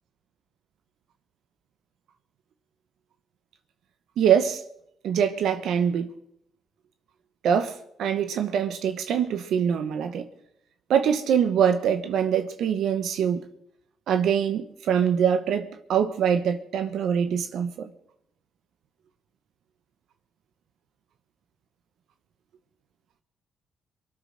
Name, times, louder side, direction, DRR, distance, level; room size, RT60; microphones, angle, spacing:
voice 1, 4.2-4.6 5.0-6.1 7.4-10.3 10.9-13.4 14.1-17.9, right 8 dB, 75° right, 1.2 m, -24 dB
23.5 x 8.8 x 6.6 m
cardioid pair, 90°, 0 cm